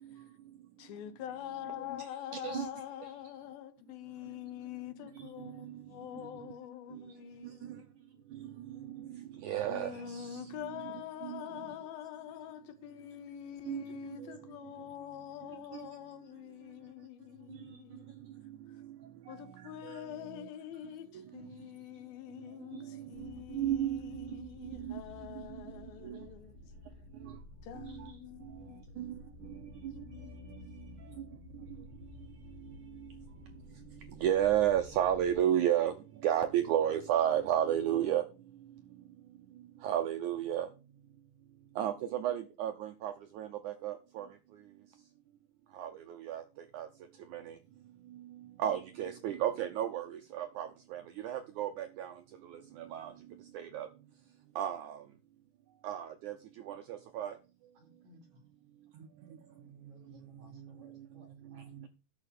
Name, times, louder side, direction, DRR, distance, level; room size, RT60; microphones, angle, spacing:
voice 1, 0.8-7.8 8.7-8.8 9.7-18.2 19.3-26.6 27.6-28.9 29.9-30.7, left 11 dB, 80° left, 2.9 m, -45 dB
voice 2, 2.3-2.7 5.2-5.8 6.9-7.0 8.3-10.9 11.2-11.4 13.6-13.9 14.2-14.4 15.7-15.8 19.3-19.4 19.8-20.0 20.3-20.5 22.7-24.3 24.6-25.0 26.0-26.2 27.2-27.3 27.8-28.1 29.0-30.0 30.5-30.6 31.2-31.3 33.0-33.1 34.2-36.0 36.2-38.2 39.8-40.7 41.8-44.3 45.7-46.4 46.7-46.9 47.3-47.6 48.6-52.1 52.5-53.1 53.5-53.9 54.6-55.0 55.8-56.4 56.7-57.3, right 11 dB, 75° right, 1.9 m, -33 dB
sound 1, 23.1-35.4, left 3 dB, 65° left, 1.0 m, -52 dB
voice 3, 57.8-58.4 59.5-61.9, left 2 dB, 50° right, 4.0 m, -61 dB
12.5 x 4.5 x 7.9 m
omnidirectional pair, 4.3 m